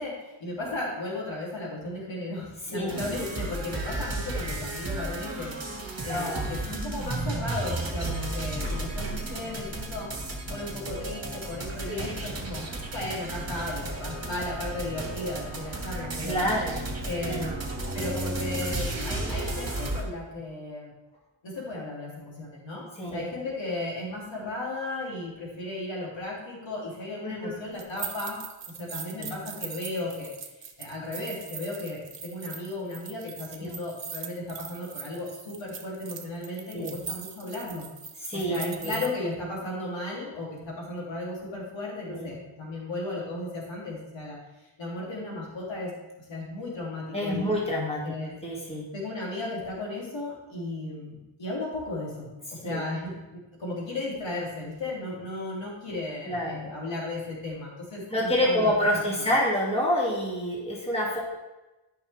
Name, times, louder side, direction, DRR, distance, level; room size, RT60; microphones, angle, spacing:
voice 1, 0.0-10.1 10.5-12.6 12.9-16.5 17.0-17.6 17.9-20.9 21.4-30.3 30.8-37.9 38.3-44.4 44.8-45.9 46.2-47.5 48.0-48.4 48.9-58.7, left 2 dB, 65° left, -4 dB, 3.3 m, -35 dB
voice 2, 2.7-3.0 6.1-6.6 11.9-12.1 16.2-16.9 17.2-17.6 23.0-23.3 27.2-27.6 29.1-29.4 33.6-33.7 36.7-37.0 38.2-39.1 42.1-42.4 47.1-48.0 48.4-48.9 52.6-52.8 56.3-56.7 58.1-61.2, left 1 dB, 10° left, -4 dB, 2.6 m, -28 dB
sound 1, 2.9-20.0, right 2 dB, 30° right, 1.9 m, -33 dB
sound 2, 27.7-39.1, right 6 dB, 60° right, 1.2 m, -40 dB
13.0 x 5.7 x 3.6 m, 1.0 s
cardioid pair, 100°, 48 cm